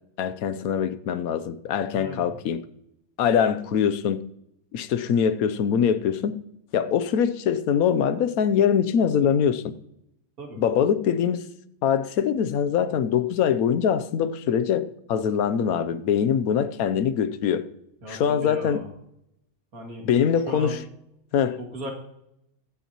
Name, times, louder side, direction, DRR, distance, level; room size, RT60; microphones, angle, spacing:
voice 1, 0.2-2.6 3.2-4.2 4.7-6.4 6.7-9.7 10.6-11.5 11.8-17.7 18.1-18.8 20.0-20.8 21.3-21.6, left 8 dB, 85° left, 1.2 m, -23 dB
voice 2, 1.9-2.4 10.4-10.6 18.0-18.9 19.7-20.1 20.5-20.8 21.6-21.9, right 1 dB, 85° right, 2.7 m, -37 dB
22.0 x 8.2 x 2.9 m
omnidirectional pair, 1.5 m